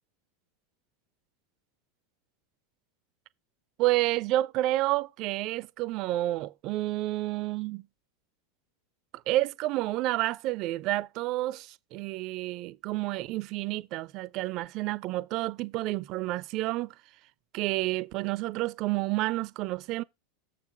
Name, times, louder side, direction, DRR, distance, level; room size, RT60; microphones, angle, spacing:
voice 1, 3.8-7.8 9.3-16.9 17.5-20.0, right 17 dB, 50° right, 0.5 m, -30 dB
7.2 x 5.9 x 4.8 m
figure-of-eight pair, 85°, 0 cm